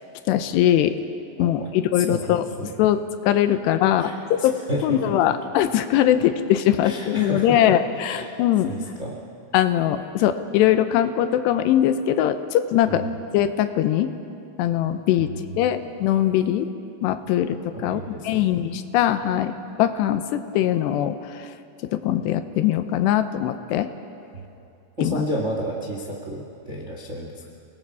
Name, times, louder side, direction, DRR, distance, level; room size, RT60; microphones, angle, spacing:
voice 1, 0.3-1.0 1.4-1.6 1.9-2.4 2.8-4.6 4.8-8.7 9.5-13.0 13.3-14.1 14.6-15.3 15.6-16.7 17.0-21.5 21.9-23.9 25.0-25.2, left 11 dB, 85° left, 10 dB, 3.0 m, -21 dB
voice 2, 1.9-2.7 4.0-5.1 6.8-8.4 8.6-9.2 12.9-13.1 15.2-15.9 17.7-18.6 24.3-24.4 25.0-27.5, equal, 60° right, -1 dB, 0.7 m, -32 dB
29.5 x 19.5 x 4.8 m, 2.7 s
omnidirectional pair, 4.8 m